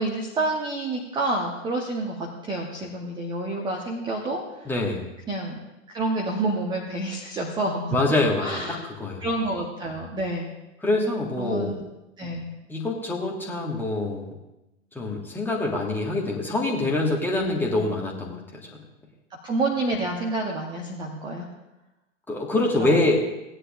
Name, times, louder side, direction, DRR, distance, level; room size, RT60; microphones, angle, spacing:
voice 1, 0.0-4.7 5.3-5.6 5.9-8.0 8.4-8.8 9.2-10.5 11.4-11.8 12.2-12.5 17.4-17.7 19.4-21.5 22.8-23.0, right 2 dB, 10° right, 0 dB, 0.9 m, -28 dB
voice 2, 4.6-5.1 7.9-9.2 10.8-11.8 12.7-14.3 14.9-18.4 22.3-23.2, left 2 dB, 5° left, -2 dB, 1.7 m, -25 dB
17.5 x 9.8 x 2.5 m, 0.96 s
figure-of-eight pair, 110°, 39 cm